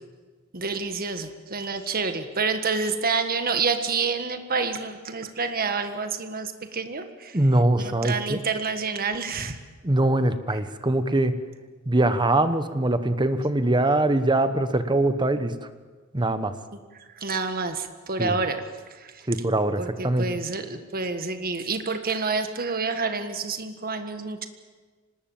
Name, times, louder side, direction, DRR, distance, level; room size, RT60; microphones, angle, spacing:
voice 1, 0.5-7.4 7.8-9.6 16.7-16.8 17.1-19.2 19.8-24.5, right 4 dB, 45° right, 8 dB, 1.7 m, -28 dB
voice 2, 7.3-8.4 9.8-11.3 11.9-15.5 16.1-16.5 18.2-18.4 19.3-20.3, right 1 dB, 20° right, 11 dB, 1.1 m, -22 dB
25.0 x 19.5 x 7.3 m, 1.4 s
head